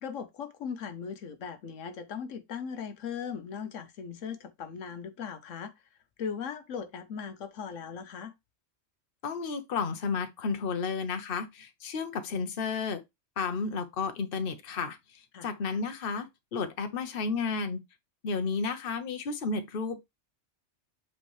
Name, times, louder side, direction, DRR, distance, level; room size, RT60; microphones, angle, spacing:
voice 1, 0.0-5.7 6.2-8.3 15.3-15.5, left 6 dB, 80° left, 1.2 m, -38 dB
voice 2, 9.2-13.0 13.4-15.0 15.4-17.8 18.2-20.0, left 5 dB, 50° left, 1.1 m, -32 dB
7.9 x 4.5 x 3.2 m
omnidirectional pair, 1.3 m